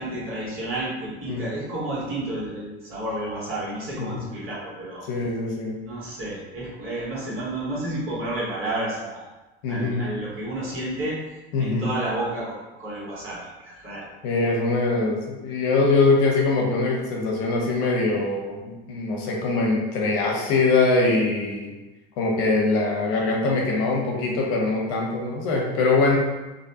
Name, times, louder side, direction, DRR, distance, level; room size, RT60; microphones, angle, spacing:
voice 1, 0.0-5.0 5.9-9.2 9.7-11.2 11.6-14.0, right 1 dB, 40° right, -7 dB, 1.4 m, -31 dB
voice 2, 5.0-5.8 9.6-10.1 11.5-11.9 14.2-21.7 22.2-26.2, left 3 dB, 65° left, -1 dB, 0.7 m, -23 dB
2.6 x 2.2 x 2.7 m, 1.1 s
hypercardioid pair, 85°, 32 cm